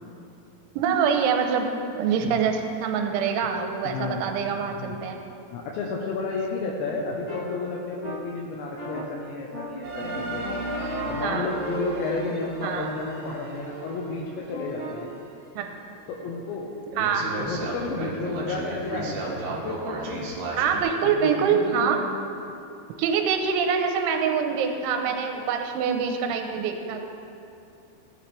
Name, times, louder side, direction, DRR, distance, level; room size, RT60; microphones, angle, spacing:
voice 1, 0.8-1.7 1.9-5.2 11.2-11.5 12.6-12.9 15.6-15.7 16.9-17.3 20.5-22.0 23.0-27.0, right 6 dB, 90° right, 4 dB, 3.1 m, -25 dB
voice 2, 3.8-4.3 4.8-4.9 5.5-10.4 11.1-15.1 16.1-16.7 17.2-20.3 21.0-22.0, left 3 dB, 75° left, -2 dB, 3.0 m, -32 dB
sound 1, 7.3-7.4 8.0-8.2 8.8-9.0 9.5-9.7 10.0-10.5 11.0-13.3 14.5-15.0, left 1 dB, 30° left, 1.8 m, -40 dB
sound 2, 9.8-15.2 15.7-15.8 16.4-16.5 16.9-20.8, right 2 dB, 65° right, 2.7 m, -34 dB
17.0 x 9.3 x 3.3 m, 2.6 s
omnidirectional pair, 5.5 m